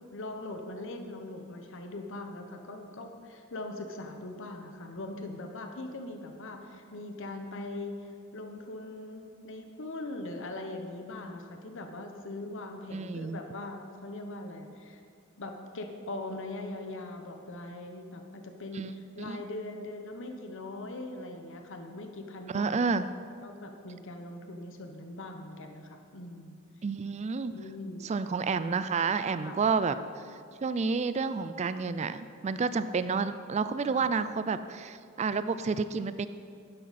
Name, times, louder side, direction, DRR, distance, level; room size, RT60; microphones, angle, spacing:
voice 1, 0.1-15.0 15.4-22.8 23.4-26.6 27.5-28.0 29.4-29.6 33.9-34.1, left 2 dB, 65° left, 5 dB, 1.0 m, -41 dB
voice 2, 12.9-13.4 18.8-18.9 19.3-19.4 22.5-23.1 26.8-27.6 28.0-30.2 30.6-36.3, right 5 dB, 30° right, 12 dB, 0.4 m, -30 dB
12.0 x 9.9 x 4.2 m, 2.2 s
head